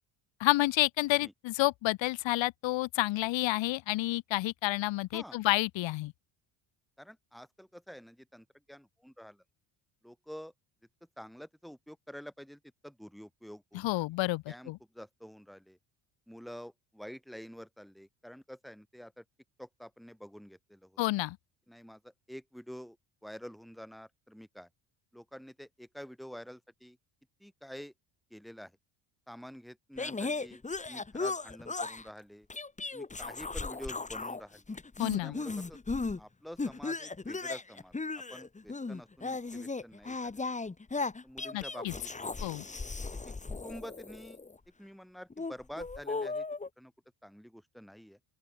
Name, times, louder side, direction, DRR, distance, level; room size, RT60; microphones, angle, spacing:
voice 1, 0.4-6.1 13.7-14.8 21.0-21.4 35.0-35.4 41.5-41.9 42.4-42.6, left 19 dB, 70° left, 1.4 m, -30 dB
voice 2, 7.0-9.4 10.0-10.5 11.2-14.1 14.5-15.8 16.3-19.2 19.6-21.0 21.7-23.0 23.2-24.7 25.1-27.0 27.4-27.9 28.3-28.7 29.3-32.5 32.9-34.6 35.2-35.8 36.2-37.9 38.3-40.4 41.2-42.3 43.1-44.4 44.8-46.4 46.8-46.9 47.2-48.2, equal, ahead, 5.2 m, -48 dB
sound 1, 30.0-32.1 32.5-34.4 34.7-36.2 36.6-44.5 45.3-46.7, left 3 dB, 15° left, 2.2 m, -36 dB
open air
cardioid pair, 105°, 46 cm